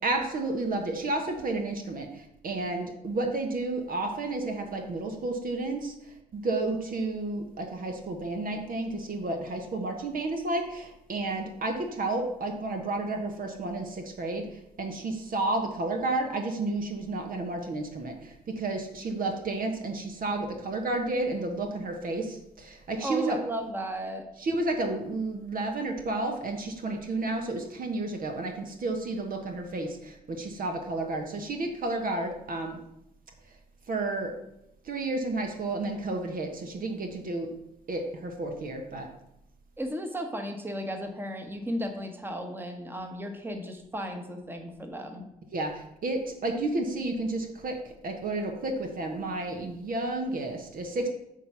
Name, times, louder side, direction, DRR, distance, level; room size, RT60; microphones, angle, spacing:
voice 1, 0.0-23.4 24.4-32.8 33.9-34.3 34.8-37.5 37.9-39.1 45.5-51.1, right 2 dB, 40° right, 3 dB, 1.3 m, -31 dB
voice 2, 23.0-24.2 39.8-45.2, equal, 10° right, 5 dB, 1.4 m, -34 dB
8.9 x 4.5 x 5.8 m, 0.84 s
figure-of-eight pair, 45°, 21 cm